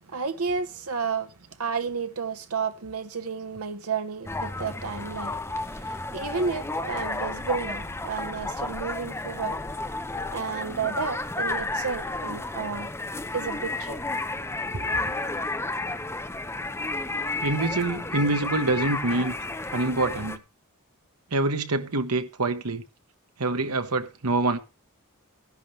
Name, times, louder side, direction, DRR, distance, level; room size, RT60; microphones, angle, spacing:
voice 1, 0.0-9.6 10.3-12.9 13.3-14.0 14.7-15.0, right 5 dB, 75° right, 1.1 m, -32 dB
sound 1, 4.3-20.4, left 2 dB, 10° left, 0.8 m, -32 dB
voice 2, 17.4-19.3 19.7-20.4 21.3-22.8 23.4-24.6, right 2 dB, 90° right, 1.3 m, -25 dB
14.0 x 11.0 x 3.3 m
head